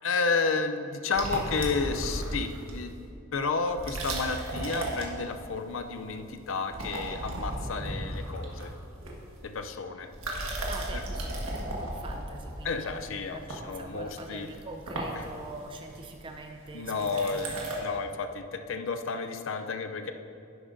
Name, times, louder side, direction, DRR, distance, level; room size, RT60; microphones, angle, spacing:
voice 1, 0.0-3.0 3.3-8.7 9.4-10.1 12.6-14.5 15.1-15.2 16.7-20.1, left 4 dB, 65° left, 8 dB, 0.5 m, -31 dB
sound 1, 1.1-2.9 3.7-5.6 5.9-6.3 6.6-9.6 10.1-17.8, right 1 dB, 85° right, 1.5 m, -35 dB
voice 2, 10.7-17.6, right 2 dB, 25° right, 4 dB, 0.5 m, -44 dB
11.0 x 9.9 x 2.6 m, 2.6 s
head